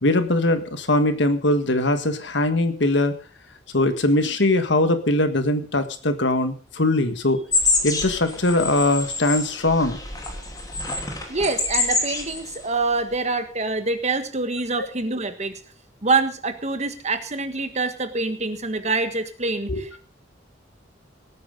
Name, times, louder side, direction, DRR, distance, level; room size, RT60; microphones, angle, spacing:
voice 1, 0.0-3.1 3.7-7.4 7.8-10.0 14.8-14.9 19.7-19.8, left 2 dB, 65° left, 9 dB, 1.7 m, -21 dB
sound 1, 7.5-12.7 12.9-13.1, left 3 dB, 20° left, 2.9 m, -26 dB
voice 2, 11.3-15.6 16.0-20.0, right 3 dB, 35° right, 9 dB, 1.5 m, -25 dB
18.0 x 9.3 x 5.2 m, 0.39 s
head